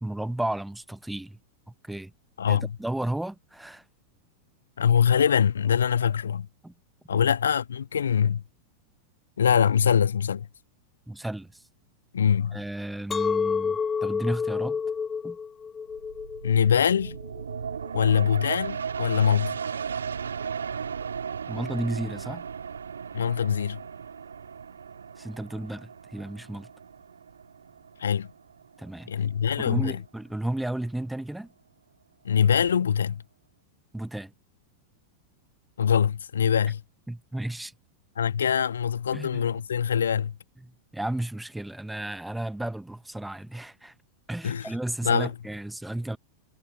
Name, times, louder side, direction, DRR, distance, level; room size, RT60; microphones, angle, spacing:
voice 1, 0.0-1.4 1.7-2.1 2.5-3.8 6.6-6.7 7.1-7.2 11.1-11.6 12.5-14.8 15.2-15.4 21.5-22.4 25.2-26.7 28.8-29.3 29.6-31.5 33.9-34.3 37.1-37.7 39.1-39.5 40.6-43.9 44.3-46.2, right 1 dB, 5° right, 1.3 m, -33 dB
voice 2, 2.4-2.7 4.8-6.5 7.1-8.4 9.4-10.5 12.1-12.6 16.4-17.2 17.9-19.6 23.1-23.8 28.0-28.3 29.1-30.0 32.2-33.2 35.8-36.8 38.2-40.3 44.4-44.7 45.0-45.3, left 8 dB, 70° left, 1.5 m, -23 dB
Chink clink, 13.1-18.3, left 6 dB, 15° left, 0.4 m, -30 dB
sound 1, 15.9-29.2 29.6-29.7, right 6 dB, 70° right, 1.9 m, -36 dB
figure-of-eight pair, 90°, 0 cm